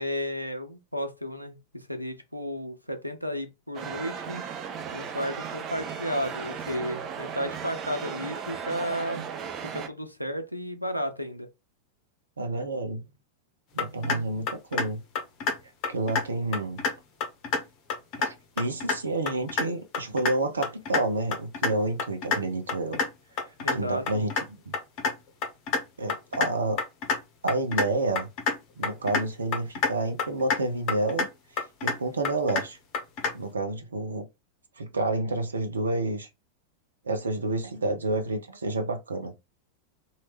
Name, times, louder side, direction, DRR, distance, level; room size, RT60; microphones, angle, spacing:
voice 1, 0.0-4.4 4.9-9.3 9.6-11.5 23.6-24.3, equal, 90° left, 0.6 m, -33 dB
sound 1, 3.7-9.9, right 7 dB, 35° right, 0.5 m, -36 dB
voice 2, 12.4-13.0 13.7-15.0 15.9-16.8 18.2-23.0 23.5-24.3 24.7-24.8 26.0-26.8 27.4-28.3 28.8-31.3 31.5-32.8 33.3-34.3 34.8-36.3 37.0-39.3, right 2 dB, 75° right, 0.7 m, -29 dB
sound 2, 13.8-14.2 14.5-14.9 15.2-15.5 15.8-16.2 16.5-16.9 17.2-17.6 17.9-18.3 18.6-19.0 19.3-19.6 19.9-20.3 20.6-21.0 21.3-21.7 22.0-22.4 22.7-23.1 23.4-23.7 24.1-24.4 24.7-25.1 25.4-25.8 26.1-26.5 26.8-27.2 27.5-27.8 28.2-28.6 28.8-29.2 29.5-29.9 30.2-30.6 30.9-31.3 31.6-32.0 32.2-32.6 32.9-33.3, left 5 dB, 40° left, 1.0 m, -26 dB
3.0 x 2.8 x 3.2 m
figure-of-eight pair, 90°, 0 cm